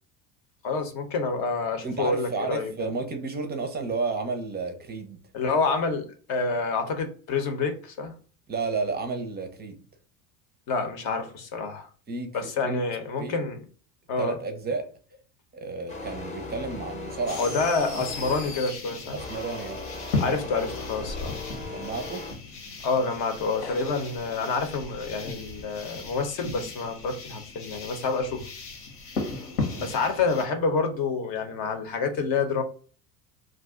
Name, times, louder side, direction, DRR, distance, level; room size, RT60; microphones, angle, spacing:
voice 1, 0.6-2.9 5.3-8.1 10.7-11.9 12.3-13.6 14.1-14.3 17.4-19.2 20.2-21.4 22.8-28.5 29.8-32.6, left 4 dB, 50° left, 0.8 m, -28 dB
voice 2, 1.8-5.2 8.5-9.8 12.1-12.8 13.2-13.5 14.2-14.9 15.5-17.6 19.1-19.8 21.6-22.3 29.6-29.9, right 4 dB, 20° right, 0.5 m, -32 dB
sound 1, 15.9-18.7 19.2-22.4, left 2 dB, 15° left, 0.7 m, -38 dB
sound 2, 17.3-30.5, left 3 dB, 80° left, 1.2 m, -36 dB
2.4 x 2.2 x 3.6 m
supercardioid pair, 95°, 46 cm